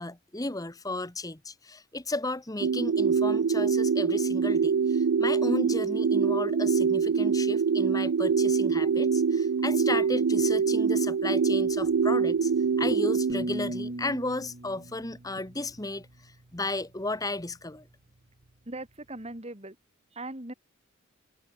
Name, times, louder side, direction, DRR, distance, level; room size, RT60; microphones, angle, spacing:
voice 1, 0.0-12.5 12.8-17.9, left 2 dB, 20° left, 1.4 m, -34 dB
sound 1, 2.6-13.3, right 6 dB, 85° right, 0.5 m, -24 dB
sound 2, 13.3-16.3, right 2 dB, 50° right, 1.2 m, -37 dB
voice 2, 18.6-19.8 20.1-20.5, right 2 dB, 30° right, 3.5 m, -40 dB
head